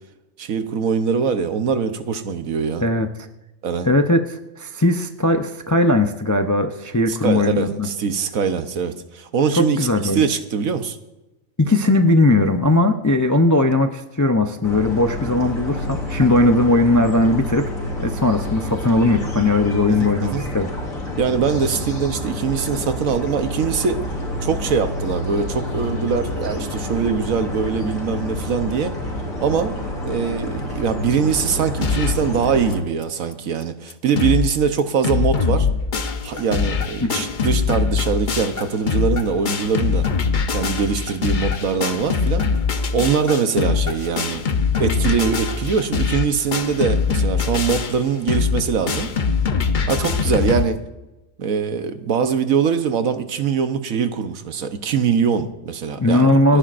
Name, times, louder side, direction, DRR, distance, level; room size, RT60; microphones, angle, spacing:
voice 1, 0.4-2.9 3.6-3.9 7.1-11.0 19.9-20.4 21.2-24.0 24.4-29.0 29.4-35.7 36.2-40.1 40.5-42.4 42.9-44.4 44.8-49.1 49.9-50.8 51.4-56.6, right 6 dB, 75° right, 9 dB, 1.3 m, -22 dB
voice 2, 3.8-7.9 9.6-10.2 11.6-17.7 18.0-20.7 37.0-37.3 56.0-56.6, left 2 dB, 25° left, 6 dB, 0.4 m, -18 dB
sound 1, 14.6-32.8, left 1 dB, 75° left, 3.7 m, -28 dB
sound 2, 31.8-32.3 32.7-32.8 33.0-33.1 33.6-33.7 33.9-34.5 34.8-50.6, left 5 dB, 40° left, 0.8 m, -22 dB
28.5 x 10.0 x 2.5 m, 0.99 s
omnidirectional pair, 1.4 m